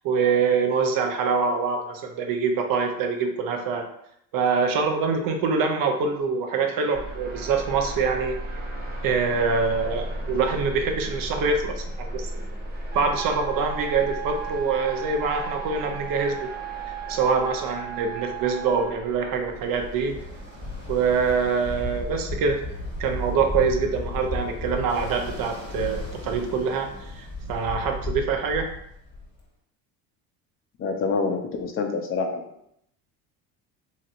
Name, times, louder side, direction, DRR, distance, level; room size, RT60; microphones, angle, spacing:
voice 1, 0.0-3.8 4.3-8.4 9.0-12.4 12.9-16.4 17.1-20.1 20.9-22.6 23.0-28.7, right 5 dB, 50° right, 4 dB, 0.6 m, -25 dB
sound 1, 6.9-26.6, right 1 dB, 20° right, 0.9 m, -38 dB
sound 2, 12.9-18.9, right 13 dB, 80° right, 0.9 m, -37 dB
Ocean, 19.5-29.4, left 2 dB, 10° left, 1.0 m, -34 dB
voice 2, 30.8-32.4, left 4 dB, 30° left, 4 dB, 0.5 m, -26 dB
3.0 x 2.8 x 2.5 m, 0.74 s
supercardioid pair, 95°, 42 cm